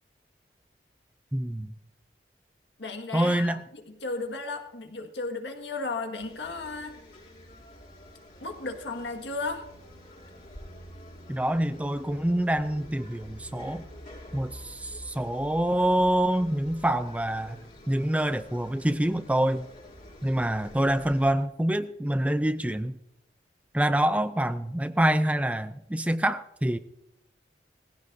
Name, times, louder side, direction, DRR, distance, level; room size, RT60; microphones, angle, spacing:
voice 1, 1.3-1.7 3.1-3.6 11.3-13.9 14.3-17.6 17.9-19.7 20.2-23.0 23.7-26.8, right 1 dB, 10° right, 0.4 m, -26 dB
voice 2, 2.8-7.0 8.4-9.7, left 3 dB, 90° left, 1.8 m, -34 dB
sound 1, 6.2-21.3, left 1 dB, 50° left, 5.0 m, -48 dB
19.5 x 16.0 x 2.6 m
head